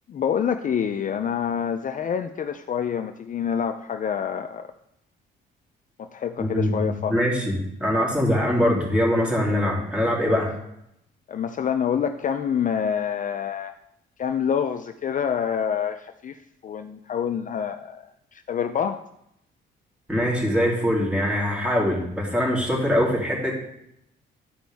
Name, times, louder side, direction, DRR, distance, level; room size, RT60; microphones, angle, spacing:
voice 1, 0.1-4.7 6.0-7.2 11.3-13.7 14.2-19.0, left 8 dB, 40° left, 8 dB, 0.5 m, -27 dB
voice 2, 6.4-7.5 7.8-10.5 20.1-23.5, equal, 5° right, -4 dB, 3.2 m, -23 dB
12.5 x 5.1 x 3.5 m, 0.78 s
cardioid pair, 90°, 20 cm